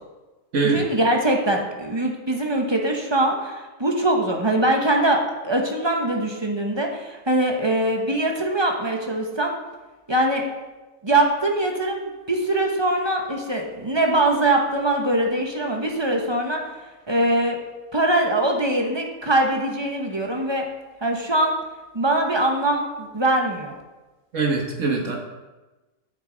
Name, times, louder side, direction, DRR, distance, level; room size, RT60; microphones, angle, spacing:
voice 1, 0.6-9.5 10.1-10.4 11.0-16.6 17.1-17.6 17.9-20.6 21.0-21.6 21.9-23.7, right 1 dB, 20° right, 1 dB, 0.9 m, -22 dB
voice 2, 24.3-25.2, right 4 dB, 60° right, 1 dB, 1.7 m, -22 dB
9.4 x 6.7 x 3.9 m, 1.1 s
omnidirectional pair, 1.5 m